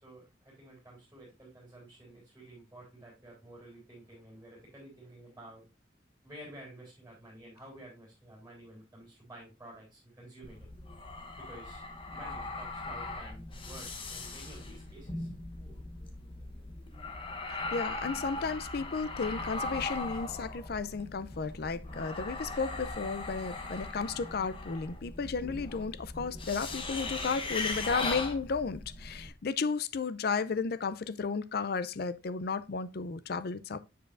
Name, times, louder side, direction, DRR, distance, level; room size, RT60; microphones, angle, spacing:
voice 1, 0.0-5.6 6.2-10.7 11.4-11.9 12.1-15.3, right 1 dB, 10° right, 3.6 m, -51 dB
sound 1, 10.4-29.3, left 3 dB, 30° left, 0.9 m, -39 dB
voice 2, 17.5-33.8, left 5 dB, 55° left, 0.5 m, -34 dB
7.5 x 6.9 x 2.5 m
head